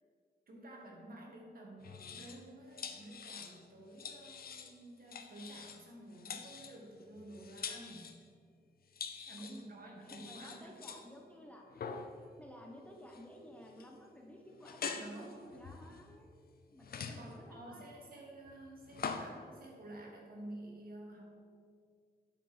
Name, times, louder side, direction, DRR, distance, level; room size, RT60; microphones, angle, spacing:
voice 1, 0.5-8.1 9.3-11.0 12.2-12.3 14.9-15.5 17.0-21.2, right 1 dB, 60° right, -1 dB, 1.9 m, -51 dB
sound 1, 1.8-2.4 2.7-3.6 4.0-4.7 5.1-5.8 6.1-8.2 8.9-9.6 10.0-11.1 11.7-12.2 13.1-13.3 13.6-13.9 14.6-16.3 16.8-17.4 18.4-19.4, left 6 dB, 65° left, 0.7 m, -45 dB
voice 2, 9.4-11.7 12.4-16.4 16.7-18.2, equal, 10° left, 0 dB, 1.1 m, -54 dB
10.5 x 5.2 x 5.0 m, 2.2 s
cardioid pair, 95°, 17 cm